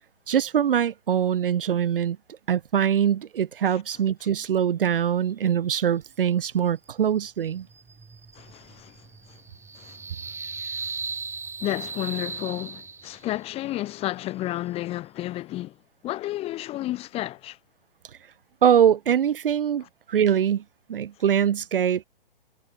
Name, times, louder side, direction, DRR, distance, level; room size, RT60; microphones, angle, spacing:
voice 1, 0.3-2.2 2.5-7.7 18.6-20.6 20.9-22.0, right 9 dB, 60° right, 1.0 m, -23 dB
sound 1, 7.4-13.4, right 5 dB, 10° right, 7.6 m, -37 dB
voice 2, 8.3-8.9 9.3-9.4 9.7-10.0 11.6-15.7 16.0-17.6, left 15 dB, 20° left, 1.7 m, -31 dB
figure-of-eight pair, 130°, 30 cm